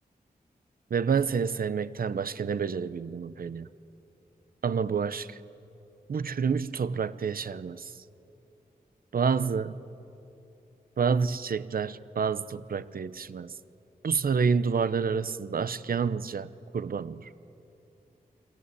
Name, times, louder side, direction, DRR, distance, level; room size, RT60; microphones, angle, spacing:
voice 1, 0.9-3.7 4.6-5.4 6.1-7.9 9.1-9.7 11.0-13.5 14.0-17.3, right 6 dB, 65° right, 0.8 m, -28 dB
29.5 x 23.0 x 8.4 m
wide cardioid pair, 110°, 16 cm